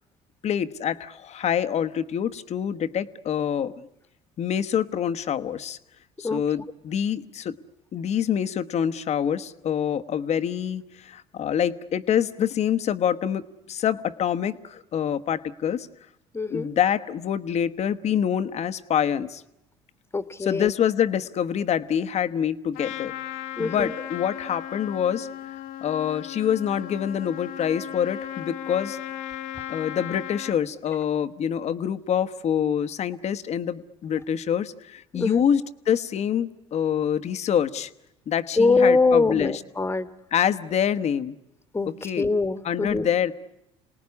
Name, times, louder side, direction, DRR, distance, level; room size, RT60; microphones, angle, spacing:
voice 1, 0.4-3.9 4.4-5.8 6.2-7.6 7.9-13.4 13.7-15.9 16.5-19.4 20.4-23.1 23.6-29.0 29.7-37.9 38.3-39.5 40.3-41.4 42.0-42.3 42.6-43.3, left 9 dB, 50° left, 9 dB, 1.2 m, -26 dB
voice 2, 16.3-16.7 20.1-20.7 23.6-23.9 35.1-35.4 38.6-40.1 41.7-43.1, left 3 dB, 15° left, 12 dB, 1.5 m, -23 dB
Trumpet, 22.7-30.6, left 12 dB, 70° left, 1.3 m, -36 dB
28.0 x 19.0 x 9.7 m, 0.87 s
supercardioid pair, 80°, 15 cm